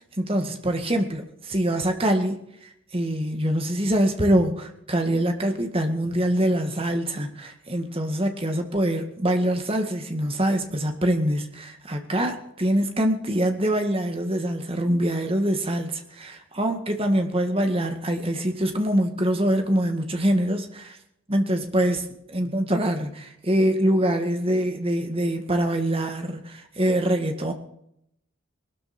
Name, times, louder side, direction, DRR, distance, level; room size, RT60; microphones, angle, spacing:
voice 1, 0.2-2.4 2.6-21.0 21.3-27.5, right 1 dB, 25° right, 5 dB, 1.9 m, -24 dB
20.5 x 13.0 x 4.4 m, 0.75 s
head